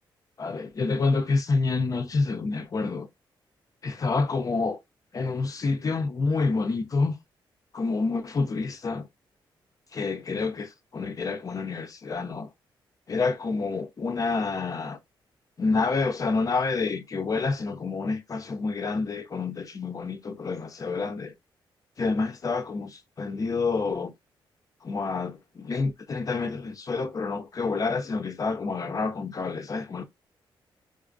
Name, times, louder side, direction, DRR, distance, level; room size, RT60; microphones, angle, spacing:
voice 1, 0.4-3.1 3.8-4.8 5.1-7.1 7.7-9.1 9.9-12.5 13.1-15.0 15.6-21.3 22.0-24.1 24.8-30.0, left 4 dB, 40° left, 0.5 m, -28 dB
3.8 x 2.4 x 2.5 m
cardioid pair, 80°, 9 cm